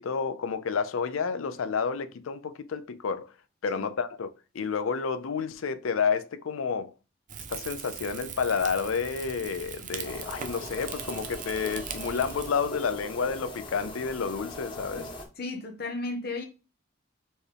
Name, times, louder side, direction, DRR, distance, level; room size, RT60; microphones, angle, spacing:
voice 1, 0.0-3.3 3.6-6.9 7.5-15.1, left 5 dB, 80° left, 0.5 m, -30 dB
Rain / Fire, 7.3-12.5, right 7 dB, 40° right, 0.4 m, -40 dB
sound 1, 10.0-15.3, left 1 dB, 25° left, 0.7 m, -41 dB
voice 2, 15.4-16.5, left 2 dB, 50° left, 0.9 m, -34 dB
4.4 x 3.0 x 3.3 m
head